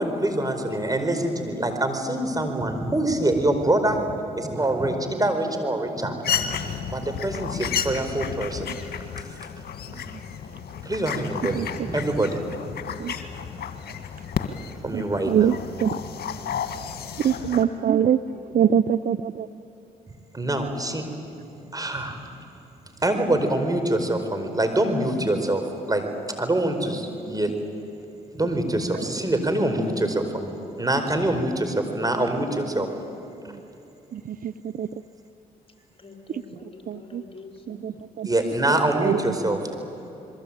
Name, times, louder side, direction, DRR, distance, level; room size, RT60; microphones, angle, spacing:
voice 1, 0.0-4.0 4.4-6.1 6.5-8.7 10.8-12.4 12.6-12.8 14.8-15.6 20.3-21.0 21.7-22.2 23.0-26.0 26.4-27.5 28.3-32.9 38.2-39.6, right 1 dB, 20° right, 6 dB, 4.7 m, -25 dB
voice 2, 0.7-1.3 36.0-37.8 40.0-40.1, left 4 dB, 35° left, 2 dB, 4.4 m, -45 dB
sound 1, 6.2-17.6, left 8 dB, 65° left, 2.0 m, -32 dB
voice 3, 14.9-16.0 17.2-19.5 28.9-29.0 34.1-34.9 36.3-36.4 36.9-37.2 37.7-38.3 38.9-39.2, right 8 dB, 55° right, 15 dB, 0.6 m, -24 dB
27.0 x 22.5 x 8.9 m, 3.0 s
supercardioid pair, 50°, 17 cm